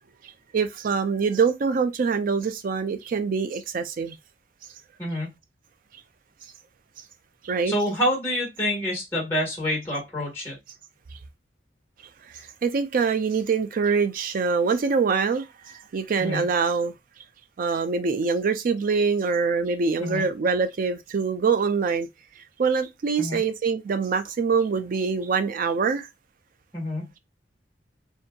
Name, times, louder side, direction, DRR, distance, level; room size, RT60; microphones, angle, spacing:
voice 1, 0.5-4.2 7.4-7.7 12.3-16.9 17.6-22.1 22.6-26.1, right 5 dB, 50° right, 0.4 m, -24 dB
voice 2, 5.0-5.3 7.6-10.6 16.2-16.4 20.0-20.3 23.2-23.4 26.7-27.1, equal, 15° left, 1.5 m, -27 dB
2.6 x 2.6 x 2.2 m
head